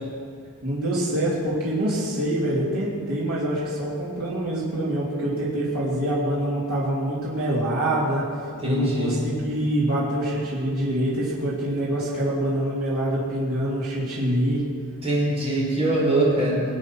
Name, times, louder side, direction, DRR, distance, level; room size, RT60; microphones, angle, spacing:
voice 1, 0.6-8.3 8.6-14.6, right 1 dB, 85° right, -8 dB, 3.2 m, -25 dB
voice 2, 8.6-9.2 15.0-16.6, right 1 dB, 30° right, -5 dB, 5.1 m, -22 dB
22.5 x 8.2 x 6.2 m, 2.2 s
head